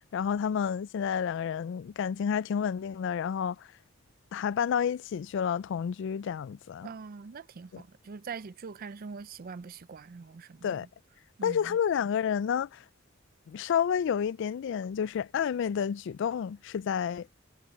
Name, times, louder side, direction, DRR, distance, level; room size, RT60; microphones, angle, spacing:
voice 1, 0.1-3.7 4.3-6.9 7.7-7.8 10.6-10.9 11.4-12.8 13.5-17.3, left 7 dB, 65° left, 0.3 m, -30 dB
voice 2, 6.8-10.9 11.4-11.8, right 5 dB, 45° right, 0.4 m, -43 dB
head